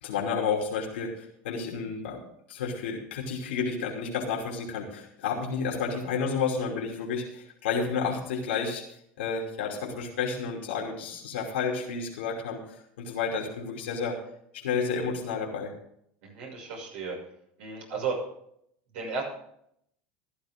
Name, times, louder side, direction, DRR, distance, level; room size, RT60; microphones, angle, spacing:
voice 1, 0.0-2.2 2.5-8.8 9.2-14.2 14.5-15.7, left 5 dB, 85° left, -1 dB, 2.8 m, -31 dB
voice 2, 16.2-17.2 17.6-18.2 18.9-19.2, right 5 dB, 80° right, -1 dB, 6.4 m, -33 dB
14.5 x 11.5 x 3.7 m, 0.72 s
supercardioid pair, 100°, 6 cm